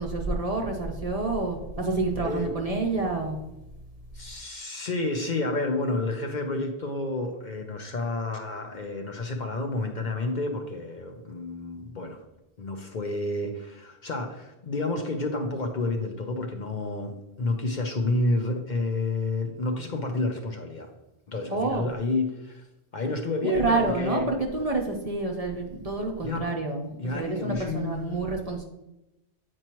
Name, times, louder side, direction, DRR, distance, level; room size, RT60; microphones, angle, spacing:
voice 1, 0.0-3.4 21.5-21.9 23.4-28.6, right 3 dB, 40° right, 1 dB, 0.7 m, -28 dB
voice 2, 4.1-12.2 12.6-20.9 21.3-22.7 22.9-24.3 26.2-26.5 27.0-28.2, left 2 dB, 50° left, 3 dB, 0.8 m, -30 dB
8.7 x 4.5 x 3.0 m, 0.94 s
omnidirectional pair, 1.1 m